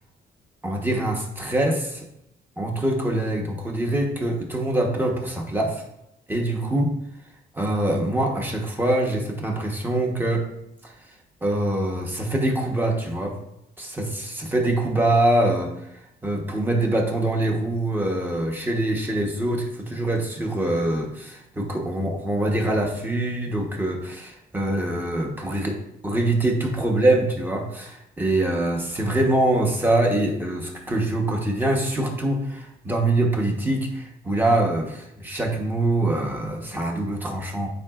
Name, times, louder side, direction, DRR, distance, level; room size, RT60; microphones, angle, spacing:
voice 1, 0.6-2.0 2.6-5.8 6.3-6.9 7.5-10.4 10.8-10.9 11.4-13.3 13.8-15.7 16.2-25.8 26.0-37.7, right 1 dB, 10° right, 0 dB, 1.0 m, -24 dB
10.5 x 4.8 x 2.4 m, 0.82 s
wide cardioid pair, 165°, 18 cm